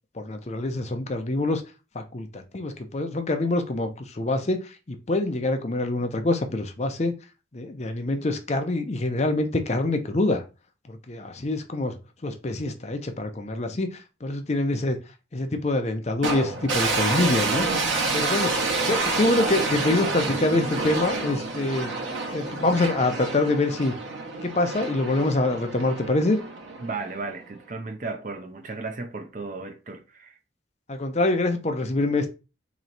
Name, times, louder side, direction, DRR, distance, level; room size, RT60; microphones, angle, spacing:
voice 1, 0.1-1.6 1.9-7.1 7.5-10.4 10.9-12.0 12.2-15.0 15.3-17.7 18.1-18.6 18.9-21.9 22.3-23.9 24.4-26.4 30.9-32.3, left 2 dB, 35° left, 0.5 m, -25 dB
sound 1, 16.2-27.4, right 3 dB, 85° right, 1.0 m, -28 dB
voice 2, 26.8-30.4, right 3 dB, 40° right, 0.5 m, -35 dB
3.1 x 3.0 x 3.9 m
head